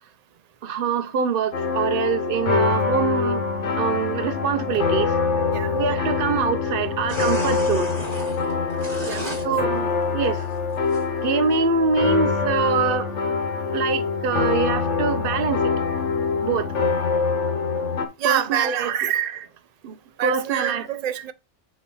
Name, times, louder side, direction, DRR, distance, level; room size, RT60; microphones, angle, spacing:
voice 1, 0.6-3.4 3.8-5.2 5.7-7.9 9.4-10.5 11.2-13.1 13.7-15.7 16.4-16.7 18.2-19.5 19.8-20.9, right 6 dB, 55° right, 0.8 m, -24 dB
sound 1, 1.5-18.1, left 5 dB, 70° left, 1.3 m, -24 dB
sound 2, 7.1-9.4 9.9-11.0 11.5-11.6 12.0-12.1 12.6-12.7, equal, 30° right, 3.0 m, -33 dB
voice 2, 9.0-9.5 18.2-19.0 20.2-21.3, right 10 dB, 70° right, 0.3 m, -27 dB
6.2 x 3.1 x 5.4 m
omnidirectional pair, 1.3 m